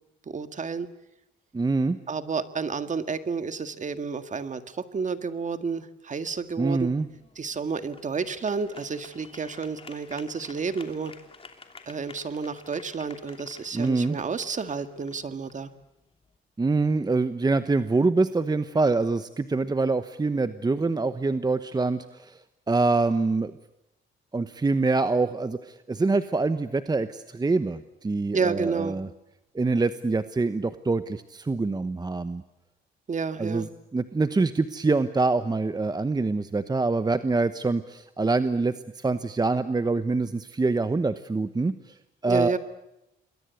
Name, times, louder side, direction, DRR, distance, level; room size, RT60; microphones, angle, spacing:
voice 1, 0.3-0.9 2.1-6.9 7.4-11.1 11.9-15.7 28.3-29.0 33.1-33.7 42.3-42.6, right 5 dB, 40° right, 10 dB, 1.9 m, -30 dB
voice 2, 1.5-2.0 6.6-7.1 13.7-14.2 16.6-22.4 22.7-23.5 24.3-29.1 29.5-32.4 33.4-42.0 42.2-42.5, right 3 dB, 20° right, 11 dB, 1.1 m, -25 dB
sound 1, 6.3-16.4, left 4 dB, 30° left, 3.0 m, -51 dB
27.5 x 22.0 x 8.3 m, 0.90 s
cardioid pair, 90°, 20 cm